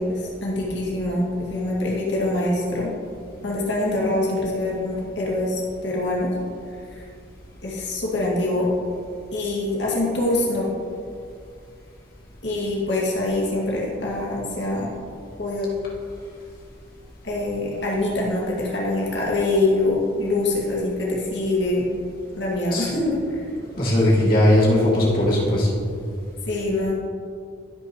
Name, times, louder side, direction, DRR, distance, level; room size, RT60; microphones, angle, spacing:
voice 1, 0.0-2.9 3.4-6.3 6.9-7.1 7.6-8.7 9.3-10.7 12.4-14.9 15.4-15.7 17.2-21.9 22.3-23.5 26.5-26.9, left 2 dB, 65° left, -4 dB, 2.2 m, -24 dB
voice 2, 23.8-25.7, left 1 dB, 50° left, -5 dB, 2.3 m, -18 dB
16.5 x 6.3 x 3.1 m, 2.3 s
head